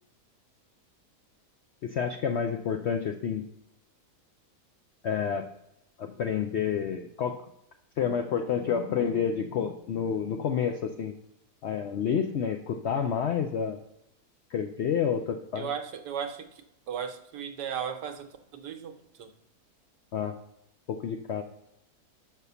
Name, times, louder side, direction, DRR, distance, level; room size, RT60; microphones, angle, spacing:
voice 1, 1.8-3.5 5.0-5.5 6.0-7.4 8.0-11.1 11.6-13.8 14.5-15.7 20.1-20.3 20.9-21.4, left 7 dB, 75° left, 5 dB, 0.6 m, -29 dB
voice 2, 15.5-19.3, right 8 dB, 85° right, 6 dB, 1.4 m, -36 dB
6.0 x 5.7 x 6.8 m, 0.82 s
omnidirectional pair, 1.7 m